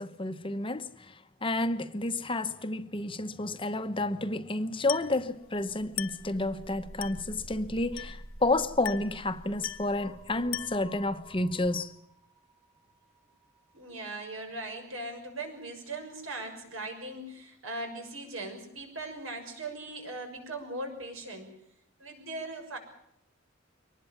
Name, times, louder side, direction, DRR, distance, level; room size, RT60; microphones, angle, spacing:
voice 1, 0.0-11.9, left 2 dB, 25° left, 0.9 m, -30 dB
Glass, 4.9-5.2 6.0-6.3 7.0-7.3 8.0-8.3 8.8-9.2 9.6-10.0 10.5-10.9, left 14 dB, 85° left, 1.2 m, -38 dB
sound 1, 5.3-15.1, right 1 dB, 40° right, 6.1 m, -50 dB
voice 2, 13.7-21.5 22.0-22.8, right 2 dB, 80° right, 6.2 m, -39 dB
23.5 x 20.0 x 7.2 m
head